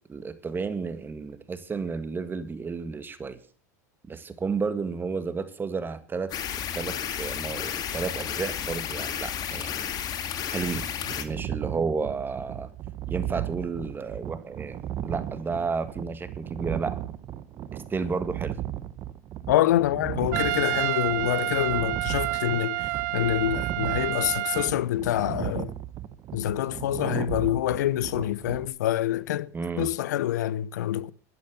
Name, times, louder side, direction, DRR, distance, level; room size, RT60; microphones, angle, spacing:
voice 1, 0.1-3.4 4.1-6.3 6.7-9.9 10.5-10.9 11.1-12.7 13.1-17.0 17.9-18.6 29.5-29.9, right 4 dB, 20° right, 1.9 m, -32 dB
sound 1, 6.3-11.2, left 9 dB, 45° left, 2.2 m, -32 dB
sound 2, 10.5-28.7, right 11 dB, 45° right, 1.1 m, -36 dB
voice 2, 19.5-25.7 26.3-29.5 29.8-31.1, left 13 dB, 80° left, 0.8 m, -26 dB
Trumpet, 20.3-24.7, right 20 dB, 70° right, 0.6 m, -29 dB
11.5 x 11.0 x 6.8 m
hypercardioid pair, 90°, 9 cm